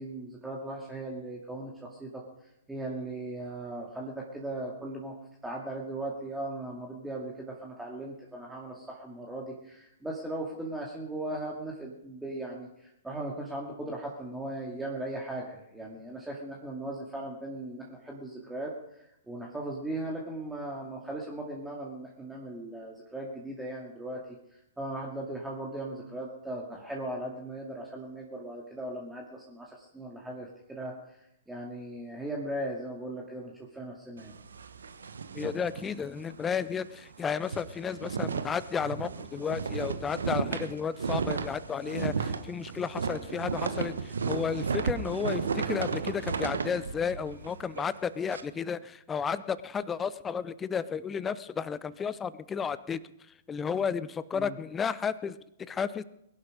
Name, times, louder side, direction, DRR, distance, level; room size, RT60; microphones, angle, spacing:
voice 1, 0.0-5.1 5.4-34.3 54.3-54.6, right 1 dB, 5° right, -2 dB, 2.4 m, -38 dB
sound 1, 34.2-36.4 36.8-36.9 37.2-48.4, right 5 dB, 75° right, 1.2 m, -34 dB
voice 2, 35.3-43.9 44.3-53.0 53.5-55.4 55.7-56.0, left 6 dB, 15° left, 16 dB, 0.7 m, -32 dB
21.5 x 11.5 x 5.2 m, 0.82 s
figure-of-eight pair, 115°, 0 cm